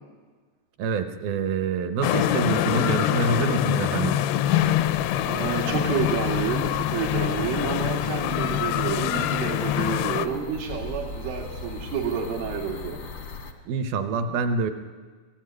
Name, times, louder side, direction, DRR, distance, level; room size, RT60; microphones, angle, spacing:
voice 1, 0.8-4.2 13.7-14.7, right 4 dB, 70° right, 8 dB, 2.5 m, -26 dB
sound 1, 2.0-10.3, left 12 dB, 80° left, 2.4 m, -25 dB
sound 2, 4.4-13.5, left 3 dB, 65° left, 1.2 m, -38 dB
voice 2, 5.3-13.0, right 7 dB, 85° right, -2 dB, 4.8 m, -29 dB
sound 3, 8.0-10.6, left 2 dB, 25° right, 0.6 m, -46 dB
22.5 x 16.5 x 9.7 m, 1.5 s
omnidirectional pair, 5.4 m